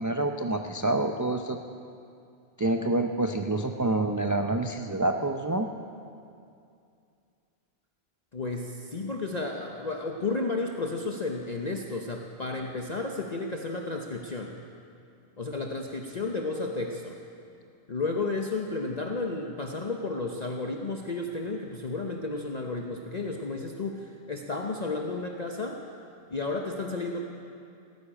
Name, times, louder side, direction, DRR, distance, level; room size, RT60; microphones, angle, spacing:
voice 1, 0.0-1.6 2.6-5.7, right 2 dB, 25° right, 5 dB, 0.4 m, -27 dB
voice 2, 8.3-14.6 15.4-17.2 17.9-25.8 26.3-27.3, left 3 dB, 40° left, 2 dB, 0.9 m, -32 dB
17.0 x 9.6 x 8.7 m, 2.5 s
omnidirectional pair, 1.2 m